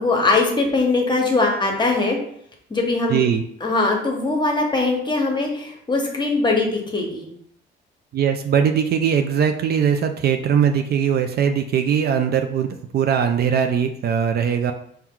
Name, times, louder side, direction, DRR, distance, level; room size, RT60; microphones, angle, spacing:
voice 1, 0.0-2.2 2.7-3.2 3.6-7.3, left 3 dB, 20° left, 1 dB, 1.0 m, -21 dB
voice 2, 3.1-3.4 8.1-14.7, right 7 dB, 55° right, 6 dB, 0.4 m, -20 dB
4.4 x 2.2 x 3.7 m, 0.68 s
cardioid pair, 90°, 20 cm